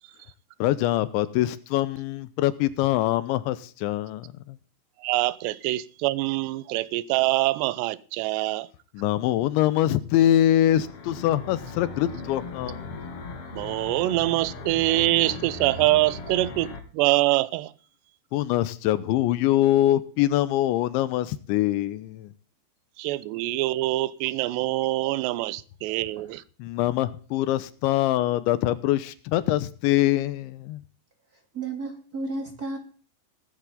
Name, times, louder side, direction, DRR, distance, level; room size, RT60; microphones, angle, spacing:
voice 1, 0.6-4.6 8.9-13.0 18.3-22.3 26.6-30.8, left 13 dB, 85° left, 3.2 m, -24 dB
voice 2, 5.0-8.7 13.5-17.7 23.0-26.4, right 17 dB, 80° right, 2.8 m, -24 dB
sound 1, 10.7-16.8, left 4 dB, 50° left, 2.0 m, -38 dB
voice 3, 31.5-32.8, right 3 dB, 25° right, 2.4 m, -32 dB
18.5 x 10.5 x 3.8 m
omnidirectional pair, 5.3 m